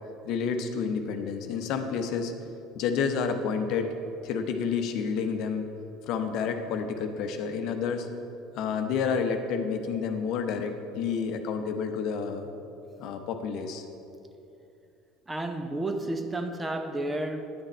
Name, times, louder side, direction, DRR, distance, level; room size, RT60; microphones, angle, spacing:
voice 1, 0.2-2.3 2.7-3.9 4.2-5.7 6.0-8.1 8.5-12.5 13.0-13.8, left 6 dB, 55° left, 6 dB, 0.8 m, -29 dB
voice 2, 15.3-17.6, right 2 dB, 15° right, 7 dB, 0.8 m, -31 dB
10.0 x 8.9 x 4.3 m, 2.8 s
figure-of-eight pair, 65°, 0 cm